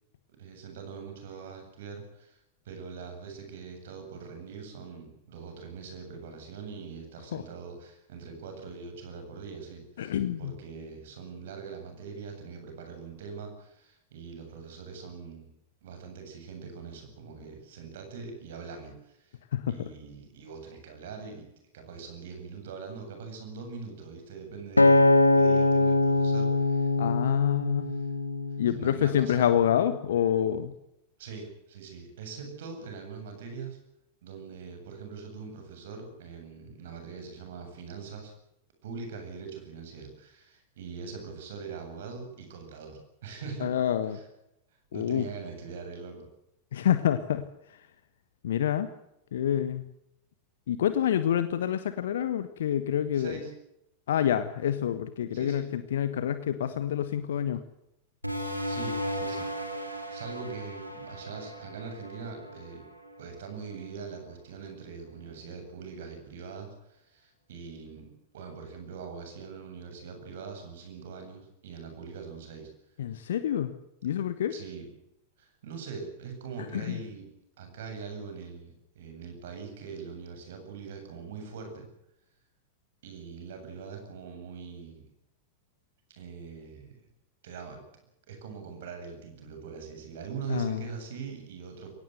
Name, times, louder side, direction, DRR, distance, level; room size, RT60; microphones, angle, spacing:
voice 1, 0.3-2.4 2.6-15.5 15.8-19.4 19.7-21.5 21.7-25.1 25.3-26.9 27.9-28.1 28.7-29.5 31.2-33.8 34.2-38.3 38.8-43.7 44.1-44.2 44.9-46.3 53.1-53.5 55.3-55.7 58.4-59.5 59.8-62.8 63.2-72.7 74.5-74.9 75.4-77.3 77.6-81.9 83.0-85.1 86.1-87.0 87.4-87.8 88.3-91.9, right 5 dB, 55° right, 5 dB, 8.0 m, -42 dB
voice 2, 10.0-10.5 19.5-19.9 27.0-27.9 28.6-30.7 43.6-44.2 44.9-45.2 46.7-47.5 48.4-48.9 49.3-49.8 50.7-53.4 54.1-57.6 73.0-73.7 74.0-74.5 76.7-77.0 90.5-90.8, left 10 dB, 60° left, 12 dB, 1.3 m, -27 dB
Acoustic guitar, 24.8-29.1 29.7-30.0, left 2 dB, 85° left, 1.4 m, -23 dB
sound 1, 58.2-63.4, equal, 90° right, 3.9 m, -36 dB
22.5 x 18.5 x 8.0 m, 0.83 s
figure-of-eight pair, 90°, 0 cm